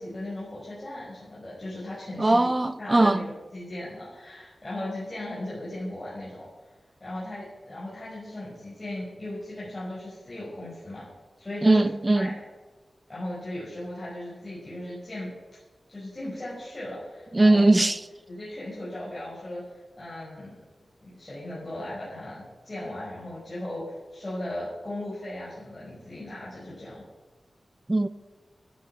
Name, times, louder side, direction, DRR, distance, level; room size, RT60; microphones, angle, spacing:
voice 1, 0.0-2.4 2.8-6.5 7.0-11.1 11.4-11.8 12.1-12.3 13.1-15.6 15.9-17.6 18.3-19.6 20.0-20.6 21.0-27.0, left 1 dB, 20° left, 6.2 m, -37 dB
voice 2, 2.2-3.2 11.6-12.3 17.3-18.0 27.9-28.1, right 2 dB, 20° right, 0.7 m, -20 dB
14.0 x 13.0 x 5.9 m
wide cardioid pair, 125°, 0 cm